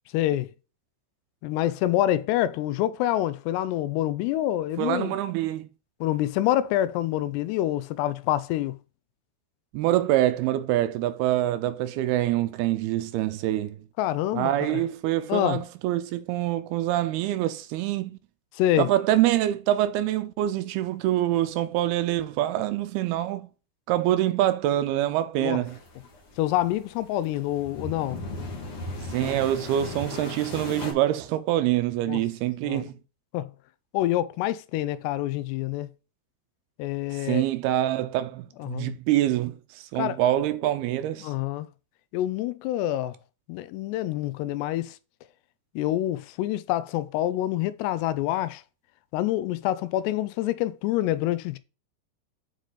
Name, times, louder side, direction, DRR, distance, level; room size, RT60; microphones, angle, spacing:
voice 1, 0.1-0.5 1.4-5.2 6.0-8.8 14.0-14.8 15.3-15.6 18.5-18.9 25.4-25.6 26.4-28.2 32.1-32.2 32.6-32.8 33.3-33.5 33.9-35.9 36.8-37.5 38.6-38.9 40.0-40.2 41.2-41.7 42.1-43.2 43.5-45.0 45.8-48.6 49.1-51.6, left 13 dB, 90° left, 2.8 m, -26 dB
voice 2, 4.8-5.7 9.7-13.8 14.3-18.2 18.8-23.5 23.9-25.8 29.1-33.0 37.1-41.3, right 13 dB, 80° right, 2.4 m, -25 dB
sound 1, 25.7-30.9, left 3 dB, 45° left, 2.0 m, -37 dB
7.9 x 5.0 x 3.9 m
omnidirectional pair, 4.8 m